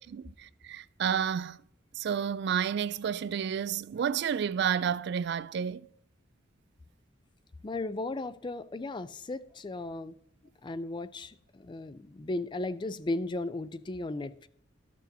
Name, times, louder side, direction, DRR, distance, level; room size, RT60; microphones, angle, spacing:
voice 1, 0.0-1.6 1.9-5.9, right 8 dB, 60° right, 0.3 m, -31 dB
voice 2, 7.6-10.2 10.6-14.5, left 2 dB, 25° left, 0.4 m, -36 dB
13.5 x 6.1 x 2.7 m
head